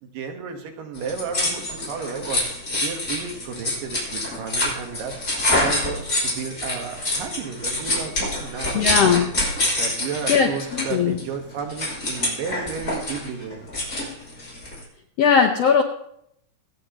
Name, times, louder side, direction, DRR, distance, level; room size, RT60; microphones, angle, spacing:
voice 1, 0.0-2.4 2.8-5.1 5.6-9.3 9.8-13.6, right 6 dB, 80° right, 4 dB, 3.1 m, -33 dB
sound 1, 0.9-14.8, left 1 dB, 25° left, 6.4 m, -26 dB
voice 2, 8.7-9.3 10.3-11.2 15.2-15.8, left 6 dB, 75° left, 3 dB, 1.5 m, -19 dB
26.0 x 9.3 x 3.0 m, 0.75 s
omnidirectional pair, 3.8 m